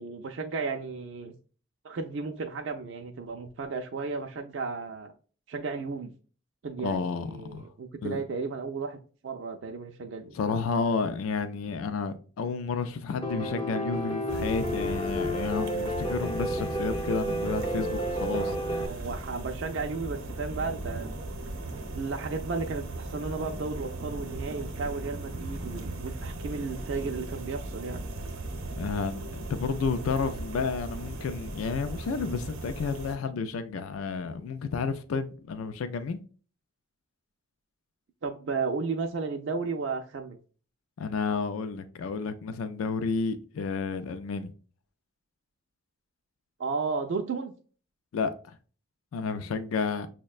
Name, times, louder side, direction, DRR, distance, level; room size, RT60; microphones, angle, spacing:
voice 1, 0.0-1.3 1.8-5.1 5.5-6.1 6.6-9.0 9.2-10.4 18.3-21.1 21.9-28.0 38.2-40.4 46.6-47.5, right 4 dB, 60° right, 0.4 m, -34 dB
voice 2, 6.8-7.7 8.0-8.2 10.3-18.8 28.7-36.2 41.0-44.5 48.1-48.6 49.1-50.1, left 5 dB, 90° left, 0.4 m, -31 dB
Piano, 13.2-18.9, equal, 25° left, 0.4 m, -31 dB
sound 1, 14.3-33.2, right 2 dB, 90° right, 0.7 m, -38 dB
6.2 x 2.1 x 2.3 m
head